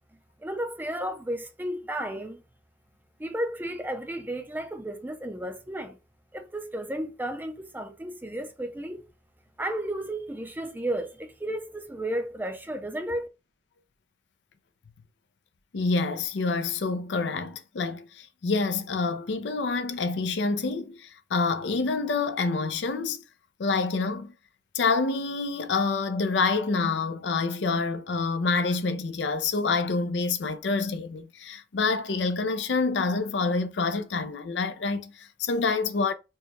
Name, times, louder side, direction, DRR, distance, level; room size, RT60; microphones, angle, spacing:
voice 1, 0.4-2.4 3.2-6.0 6.3-9.0 9.6-13.3, right 1 dB, 10° right, 0.5 m, -33 dB
voice 2, 15.7-21.0 21.3-23.2 23.6-24.3 24.7-36.1, left 4 dB, 80° left, 0.5 m, -27 dB
4.6 x 2.2 x 3.0 m
head